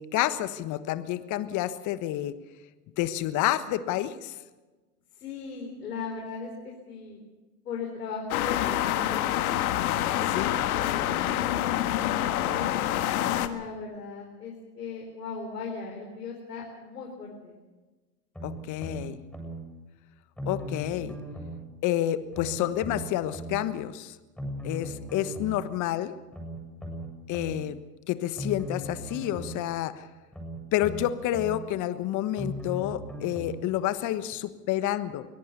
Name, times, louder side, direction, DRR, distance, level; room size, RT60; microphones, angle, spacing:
voice 1, 0.0-2.3 3.0-4.3 10.3-10.5 18.4-19.2 20.5-21.2 21.8-24.2 24.6-26.1 27.3-27.8 28.1-30.0 30.7-35.3, left 13 dB, 40° left, 13 dB, 1.3 m, -29 dB
voice 2, 5.2-7.2 7.7-9.6 10.0-12.7 13.4-17.6, left 5 dB, 85° left, 0 dB, 4.0 m, -38 dB
sound 1, 8.3-13.5, left 13 dB, 65° left, 1.7 m, -27 dB
sound 2, 18.4-19.6 20.4-21.6 22.3-23.6 24.4-25.6 26.3-27.6 28.4-29.6 30.3-31.6 32.4-33.6 34.3-34.4, equal, ahead, 7.9 m, -37 dB
23.5 x 17.5 x 6.8 m, 1.2 s
hypercardioid pair, 105°, 46 cm